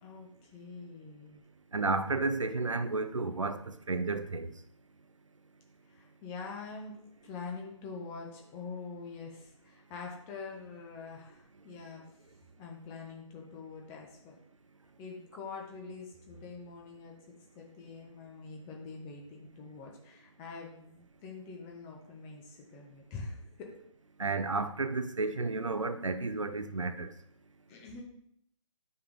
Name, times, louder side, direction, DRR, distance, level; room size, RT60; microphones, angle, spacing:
voice 1, 0.0-1.4 5.9-7.0 7.2-12.0 12.6-14.4 15.0-17.1 17.5-23.7 27.7-28.0, left 4 dB, 20° left, 1.4 m, -45 dB
voice 2, 1.7-4.5 24.2-27.1, right 3 dB, 75° right, 0.8 m, -32 dB
9.3 x 5.6 x 3.8 m
figure-of-eight pair, 140°, 17 cm